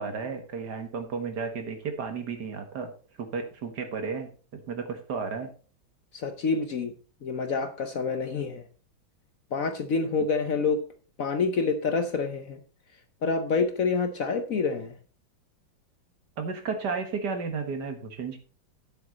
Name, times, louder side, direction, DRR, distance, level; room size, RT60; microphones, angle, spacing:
voice 1, 0.0-2.9 3.2-5.5 16.4-18.4, right 5 dB, 55° right, 6 dB, 1.9 m, -33 dB
voice 2, 6.1-6.9 7.2-8.6 9.5-10.8 11.2-12.6 13.2-14.9, left 4 dB, 55° left, 8 dB, 1.0 m, -27 dB
9.7 x 7.8 x 4.1 m, 0.38 s
omnidirectional pair, 2.2 m